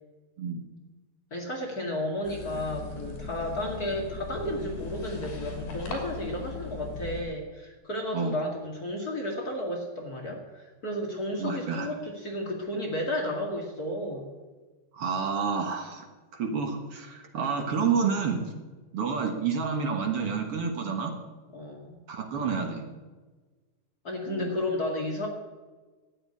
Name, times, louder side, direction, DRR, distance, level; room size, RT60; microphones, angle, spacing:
voice 1, 1.3-14.3 21.5-22.0 24.0-25.3, left 1 dB, 35° left, 0 dB, 1.9 m, -33 dB
sound 1, 2.2-7.2, left 5 dB, 80° left, 4.9 m, -38 dB
voice 2, 11.4-11.9 14.9-16.0 16.3-18.4 18.9-21.1 22.1-22.8 24.2-24.5, right 5 dB, 55° right, 3 dB, 1.8 m, -29 dB
12.5 x 8.8 x 9.8 m, 1.3 s
omnidirectional pair, 4.3 m